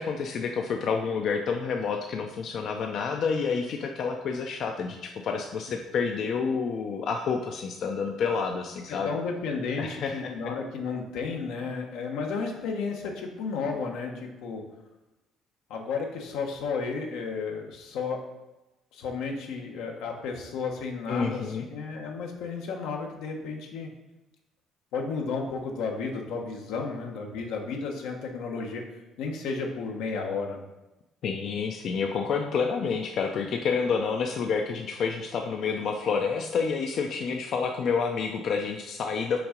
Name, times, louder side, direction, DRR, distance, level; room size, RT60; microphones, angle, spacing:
voice 1, 0.0-9.1 9.8-10.3 21.1-21.7 31.2-39.4, left 5 dB, 55° left, 3 dB, 0.5 m, -29 dB
voice 2, 8.9-14.6 15.7-18.2 18.9-23.9 24.9-28.9 29.2-30.6, left 4 dB, 85° left, 2 dB, 1.1 m, -33 dB
5.9 x 3.6 x 5.1 m, 1.0 s
cardioid pair, 135°, 0 cm